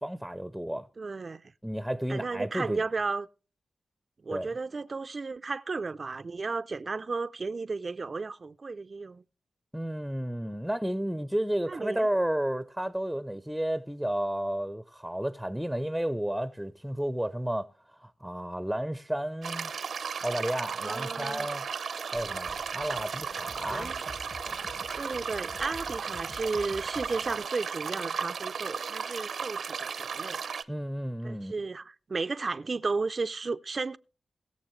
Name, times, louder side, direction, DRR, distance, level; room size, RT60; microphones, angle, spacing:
voice 1, 0.0-0.9 1.6-2.8 4.3-4.5 9.7-17.7 18.0-19.7 20.2-21.7 22.1-23.9 30.7-31.5, right 1 dB, 5° right, 0.6 m, -32 dB
voice 2, 1.0-1.4 2.1-3.3 4.2-9.2 11.7-12.1 20.8-21.5 23.7-23.9 24.9-30.4 31.2-34.0, right 4 dB, 50° right, 0.4 m, -34 dB
sound 1, 19.4-30.6, right 6 dB, 80° right, 0.7 m, -35 dB
sound 2, 22.1-27.4, left 2 dB, 30° left, 0.9 m, -48 dB
21.0 x 7.0 x 3.1 m
cardioid pair, 65°, 0 cm